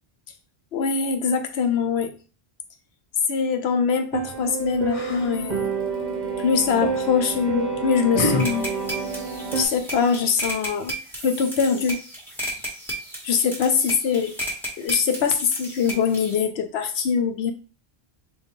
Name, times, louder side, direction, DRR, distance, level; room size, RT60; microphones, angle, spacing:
voice 1, 0.7-2.1 3.3-5.7 6.4-8.7 9.5-11.0 11.2-12.0 13.2-14.3 14.8-17.5, left 6 dB, 80° left, 0.9 m, -23 dB
sound 1, 4.1-9.7, right 5 dB, 50° right, 0.7 m, -28 dB
Yell, 4.3-9.8, left 2 dB, 40° left, 0.6 m, -34 dB
sound 2, 8.4-16.4, equal, ahead, 1.2 m, -34 dB
3.5 x 2.6 x 4.0 m
omnidirectional pair, 1.1 m